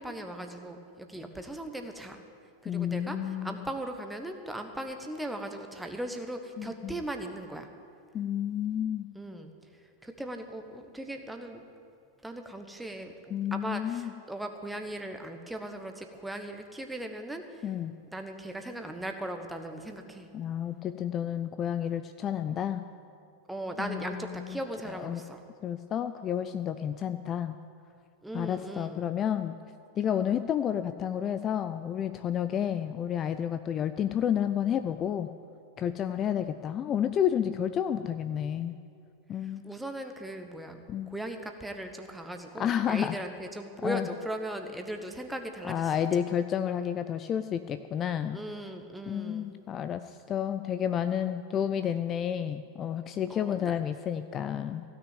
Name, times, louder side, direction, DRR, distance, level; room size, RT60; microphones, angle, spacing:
voice 1, 0.0-2.2 2.6-7.7 9.1-9.5 10.0-11.6 12.2-17.6 18.1-20.3 23.5-25.4 28.2-29.1 39.4-40.8 41.1-46.2 48.3-49.5 53.3-53.7, right 1 dB, 5° right, 6 dB, 1.2 m, -38 dB
voice 2, 2.7-3.7 6.6-7.0 8.1-9.1 13.3-14.1 17.6-17.9 20.3-22.8 23.8-24.6 24.9-25.2 25.6-27.6 28.3-29.5 30.0-35.3 35.8-38.8 39.3-39.6 40.9-41.1 42.6-43.2 43.8-44.1 45.6-48.4 49.1-54.8, left 9 dB, 30° left, 11 dB, 0.4 m, -30 dB
16.5 x 6.3 x 9.5 m, 2.5 s
figure-of-eight pair, 90°, 0 cm